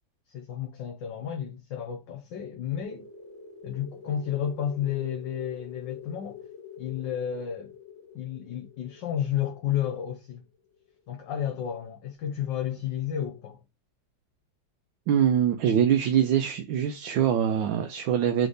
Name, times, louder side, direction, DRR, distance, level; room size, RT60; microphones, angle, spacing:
voice 1, 0.3-3.1 3.6-6.4 6.8-7.7 8.1-10.4 11.1-13.6, left 9 dB, 70° left, 1.5 m, -32 dB
sound 1, 2.8-11.1, left 6 dB, 50° left, 0.9 m, -47 dB
voice 2, 15.1-18.5, right 9 dB, 80° right, 1.3 m, -23 dB
3.8 x 3.3 x 3.9 m
omnidirectional pair, 2.1 m